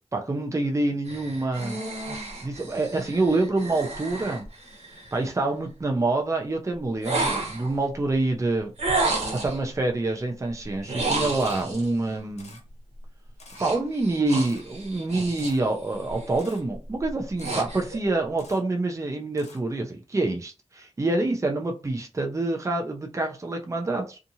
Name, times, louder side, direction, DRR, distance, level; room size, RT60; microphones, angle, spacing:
voice 1, 0.1-1.8 2.4-4.5 5.1-8.7 9.3-12.6 13.6-24.2, right 2 dB, 25° right, 0.5 m, -26 dB
sound 1, 1.1-5.3 7.0-7.8 8.8-9.6 10.8-11.9 13.6-15.7 16.0-16.4 16.9-18.0, right 2 dB, 85° right, 0.9 m, -31 dB
Camera, 11.4-11.6 12.4-12.6 13.4-13.6 14.4-14.6 15.4-15.6 16.4-16.6 17.4-17.6 18.4-18.6 19.4-19.6, left 3 dB, 80° left, 0.7 m, -49 dB
2.7 x 2.4 x 2.7 m
wide cardioid pair, 85°, 11 cm